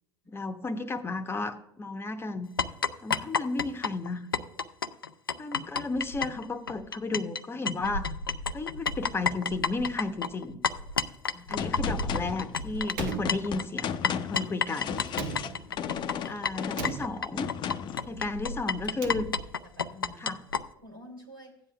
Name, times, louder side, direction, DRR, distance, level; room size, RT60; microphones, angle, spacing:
voice 1, 0.3-2.5 3.0-4.3 5.4-8.1 8.5-10.6 11.5-15.0 16.3-17.5 18.1-19.3 20.2-20.4, left 3 dB, 20° left, 8 dB, 0.9 m, -33 dB
sound 1, 2.6-7.4 7.7-20.6, left 5 dB, 90° left, 0.4 m, -31 dB
voice 2, 11.3-11.7 18.1-18.2 19.6-20.4 20.8-21.6, left 1 dB, 90° right, 1 dB, 2.6 m, -51 dB
Gunshot gunfire, 11.6-18.1, left 8 dB, 40° left, 0.6 m, -35 dB
Slam, 12.9-14.1 15.1-16.0 16.7-17.6 18.8-19.7, right 6 dB, 65° right, 0.9 m, -39 dB
15.0 x 9.7 x 2.3 m, 0.85 s
figure-of-eight pair, 65°, 11 cm